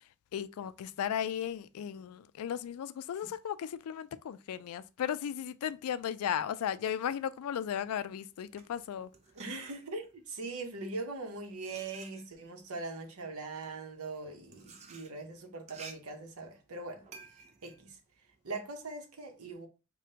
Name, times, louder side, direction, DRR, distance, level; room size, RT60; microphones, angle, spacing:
voice 1, 0.3-9.1, left 9 dB, 80° left, 0.3 m, -35 dB
sound 1, 8.3-10.3 11.0-18.9, right 5 dB, 30° right, 0.4 m, -54 dB
voice 2, 9.3-17.0 17.3-18.0 18.4-19.7, right 3 dB, 80° right, 0.8 m, -41 dB
5.0 x 2.2 x 2.8 m
head